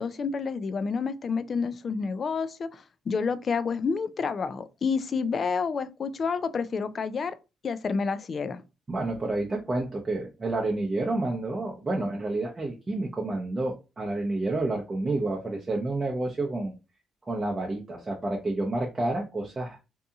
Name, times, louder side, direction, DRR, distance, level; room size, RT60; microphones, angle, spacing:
voice 1, 0.0-7.3 7.6-8.6, left 5 dB, 45° left, 0.3 m, -29 dB
voice 2, 8.9-16.7 17.3-19.8, right 2 dB, 25° right, 0.6 m, -29 dB
2.7 x 2.6 x 2.3 m
cardioid pair, 90°, 0 cm